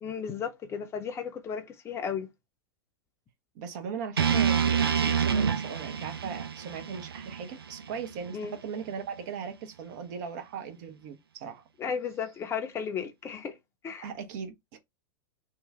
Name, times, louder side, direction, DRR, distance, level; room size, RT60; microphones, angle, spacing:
voice 1, 0.0-2.3 8.3-8.6 11.8-13.6 13.8-14.1, left 7 dB, 20° left, 0.7 m, -34 dB
voice 2, 3.5-11.6 14.0-14.8, right 6 dB, 50° right, 0.9 m, -38 dB
sound 1, 4.2-8.3, right 7 dB, 80° right, 0.5 m, -27 dB
3.0 x 2.3 x 3.6 m
figure-of-eight pair, 95°, 12 cm